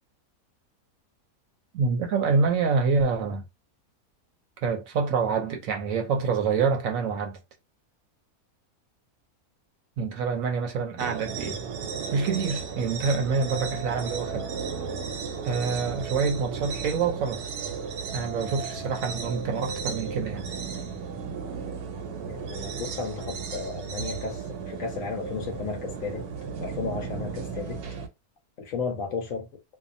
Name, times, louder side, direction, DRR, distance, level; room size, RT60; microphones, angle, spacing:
voice 1, 1.7-3.4 4.6-7.4 10.0-11.6 12.1-14.5 15.4-17.5 18.1-20.4, right 5 dB, 70° right, 0.9 m, -26 dB
sound 1, 11.0-28.1, right 5 dB, 90° right, 1.1 m, -34 dB
voice 2, 22.2-26.3 26.6-27.8 28.6-29.5, left 4 dB, 65° left, 1.0 m, -34 dB
2.6 x 2.2 x 2.5 m
omnidirectional pair, 1.6 m